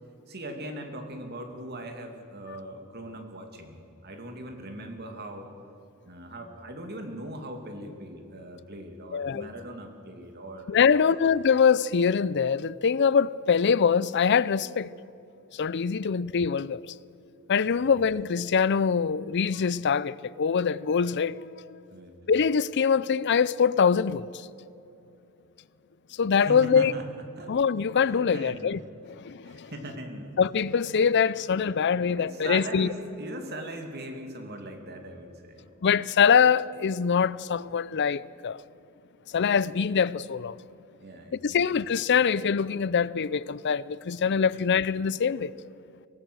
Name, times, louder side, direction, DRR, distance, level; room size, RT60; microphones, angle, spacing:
voice 1, 0.3-5.5 6.0-11.2 16.0-16.1 17.7-17.9 21.9-22.1 26.4-27.6 28.3-28.8 29.4-30.4 32.2-35.6 41.0-41.7, right 1 dB, 50° right, 2.6 m, -40 dB
voice 2, 9.1-9.5 10.7-14.9 15.5-16.8 17.5-21.8 22.3-24.3 26.2-26.9 27.5-29.7 30.4-32.9 35.8-38.6 39.3-40.6 41.3-45.5, left 6 dB, 55° left, 0.5 m, -24 dB
23.5 x 19.0 x 6.3 m
head